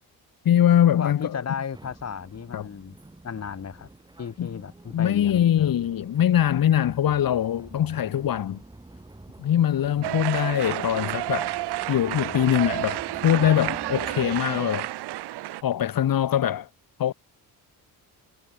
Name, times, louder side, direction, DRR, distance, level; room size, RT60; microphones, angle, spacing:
voice 1, 0.5-1.4 2.5-2.7 4.4-4.5 4.9-8.6 9.4-11.5 11.9-14.9 15.6-16.7 17.0-17.1, left 10 dB, 55° left, 3.5 m, -22 dB
voice 2, 1.0-2.9 3.2-3.9 4.2-5.7 9.9-10.3, left 7 dB, 40° left, 4.8 m, -34 dB
Bakerloo train interior, 1.7-14.4, right 2 dB, 10° right, 5.5 m, -47 dB
sound 1, 10.0-15.6, right 16 dB, 75° right, 1.2 m, -30 dB
cardioid pair, 120°, 40 cm